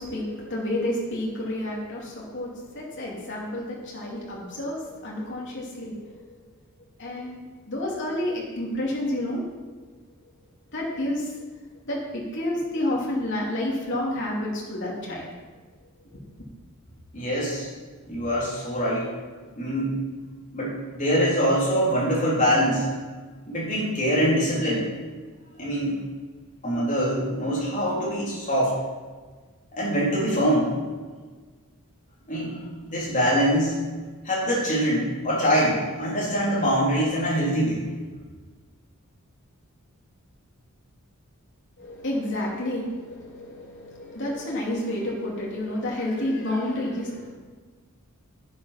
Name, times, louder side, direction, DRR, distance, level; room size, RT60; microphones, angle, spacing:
voice 1, 0.0-6.4 7.0-7.4 7.7-9.4 10.7-11.3 11.9-15.3 16.0-16.1 41.8-47.3, left 1 dB, 55° left, -3 dB, 2.8 m, -30 dB
voice 2, 17.1-17.7 18.1-19.1 19.6-20.0 20.5-22.9 23.5-24.9 25.6-26.0 26.6-28.8 29.8-30.7 32.3-33.8 34.2-37.8, equal, 35° left, -6 dB, 3.9 m, -24 dB
10.0 x 7.9 x 6.0 m, 1.4 s
head